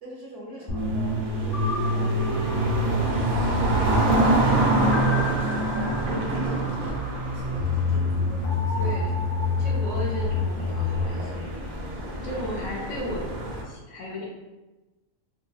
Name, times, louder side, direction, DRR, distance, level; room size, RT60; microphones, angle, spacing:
voice 1, 0.0-3.7 4.5-8.8, right 1 dB, 60° right, -4 dB, 1.0 m, -42 dB
sound 1, 0.7-11.0, left 1 dB, 45° left, 0.5 m, -27 dB
sound 2, 0.8-13.6, right 1 dB, 80° right, 1.0 m, -27 dB
voice 2, 8.8-9.1 9.6-11.5 12.2-13.2 13.6-14.3, left 1 dB, 65° left, -3 dB, 1.0 m, -35 dB
3.0 x 2.7 x 2.3 m, 1.1 s
omnidirectional pair, 1.5 m